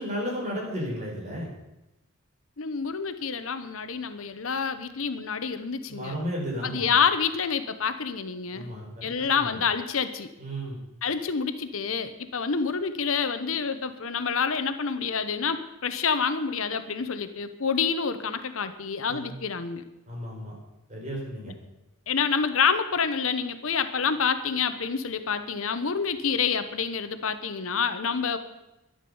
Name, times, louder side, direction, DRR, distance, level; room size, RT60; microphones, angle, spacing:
voice 1, 0.0-1.5 5.9-6.9 8.5-9.6 10.4-10.8 19.1-19.3 20.1-20.5 20.9-21.5, equal, 35° right, -2 dB, 5.1 m, -34 dB
voice 2, 2.6-6.2 6.6-8.7 9.0-10.3 11.0-19.8 22.1-28.4, left 6 dB, 70° left, 10 dB, 0.9 m, -27 dB
11.5 x 11.5 x 7.0 m, 0.96 s
head